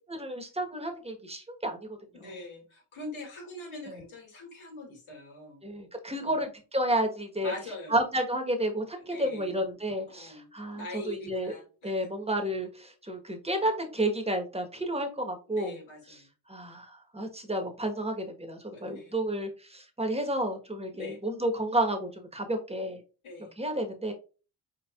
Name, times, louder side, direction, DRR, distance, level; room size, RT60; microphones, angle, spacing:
voice 1, 0.2-2.3 3.9-4.0 5.6-7.5 7.9-11.5 11.8-15.8 16.5-23.0 23.6-24.1, right 1 dB, 15° right, 4 dB, 1.3 m, -31 dB
voice 2, 2.1-5.6 6.2-6.4 7.4-8.0 8.9-9.6 10.1-12.1 15.5-16.3 18.7-19.1 20.9-21.2 23.2-23.6, left 1 dB, 85° left, 0 dB, 2.6 m, -43 dB
4.7 x 4.6 x 2.4 m, 0.34 s
cardioid pair, 90°, 47 cm